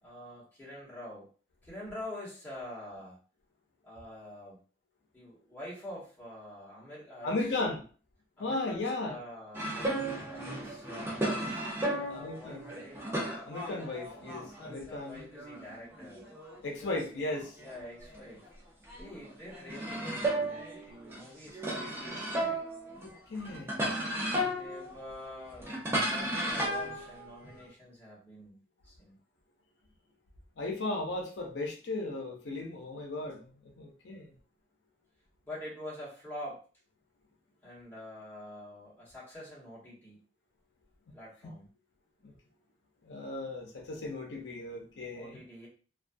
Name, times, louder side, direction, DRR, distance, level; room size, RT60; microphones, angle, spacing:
voice 1, 0.0-1.3 1.6-3.2 3.8-4.6 5.1-7.3 8.4-11.2 11.9-13.1 14.5-16.2 17.6-18.4 19.0-22.5 24.2-28.6 28.8-29.1 35.5-36.6 37.6-40.2 41.1-41.7 45.1-45.7, left 1 dB, 10° left, -8 dB, 1.1 m, -46 dB
voice 2, 7.2-7.9 8.4-9.2 12.0-12.7 13.4-15.2 16.6-17.6 23.0-23.7 30.6-34.3 41.4-41.5 42.2-42.3 43.0-45.4, left 2 dB, 80° left, 1 dB, 0.6 m, -36 dB
sound 1, 9.5-14.8 15.1-18.5 18.8-27.7, right 1 dB, 15° right, 0.5 m, -35 dB
2.3 x 2.3 x 2.5 m, 0.39 s
head